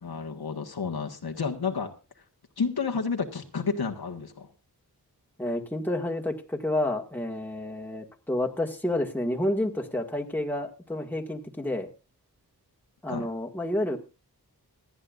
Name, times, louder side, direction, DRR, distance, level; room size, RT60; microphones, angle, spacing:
voice 1, 0.0-1.9 2.6-4.5 13.1-13.3, left 5 dB, 75° left, 3 dB, 1.6 m, -31 dB
voice 2, 5.4-11.9 13.0-14.0, left 1 dB, 5° left, 1 dB, 1.9 m, -29 dB
26.5 x 9.9 x 2.5 m, 0.30 s
wide cardioid pair, 85°, 38 cm